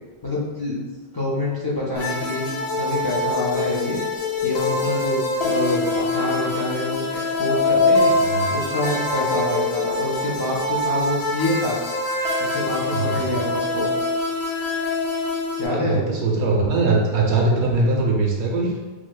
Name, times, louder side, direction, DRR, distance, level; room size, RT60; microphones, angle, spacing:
voice 1, 0.2-0.8 1.1-4.0 4.4-8.1 8.5-11.8 12.4-13.9 15.6-16.0 17.7-18.1, left 1 dB, 35° left, -5 dB, 0.4 m, -26 dB
sound 1, 2.0-15.7, left 2 dB, 85° left, 1.0 m, -24 dB
voice 2, 8.1-8.5 12.9-13.3 15.7-18.8, right 3 dB, 85° right, 0 dB, 0.9 m, -21 dB
4.8 x 2.0 x 2.3 m, 1.3 s
omnidirectional pair, 1.1 m